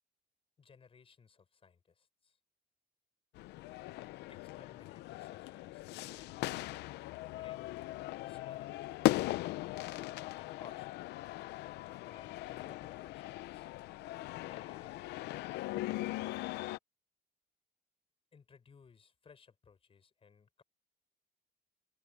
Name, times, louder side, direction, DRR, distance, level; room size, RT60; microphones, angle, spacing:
voice 1, 0.6-2.4 4.3-6.4 7.4-7.8 8.2-9.6 10.4-10.9 12.0-13.7 14.4-15.0 18.3-20.6, left 6 dB, 35° left, 6.3 m, -60 dB
sound 1, 3.3-16.8, left 17 dB, 80° left, 0.7 m, -39 dB
open air
cardioid pair, 110°, 17 cm